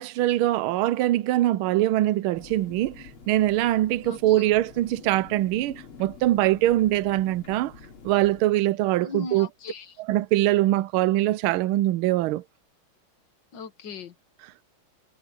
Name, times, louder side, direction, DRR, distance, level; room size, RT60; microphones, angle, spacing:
voice 1, 0.0-2.9 3.3-7.7 8.0-9.5 10.1-12.4, right 15 dB, 85° right, 1.5 m, -23 dB
sound 1, 2.3-8.4, left 5 dB, 80° left, 3.8 m, -47 dB
voice 2, 4.0-4.5 9.0-10.0 13.5-14.1, left 4 dB, 60° left, 2.2 m, -38 dB
omnidirectional pair, 2.3 m